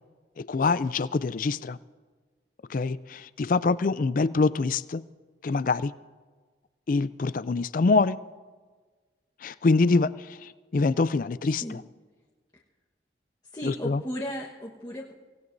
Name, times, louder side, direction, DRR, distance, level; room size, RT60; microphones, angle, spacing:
voice 1, 0.4-1.8 2.7-5.0 5.4-5.9 6.9-8.2 9.4-11.8 13.6-14.0, left 3 dB, 45° left, 16 dB, 0.4 m, -25 dB
voice 2, 13.5-15.1, equal, 20° left, -4 dB, 1.3 m, -35 dB
25.0 x 18.0 x 2.7 m, 1.4 s
head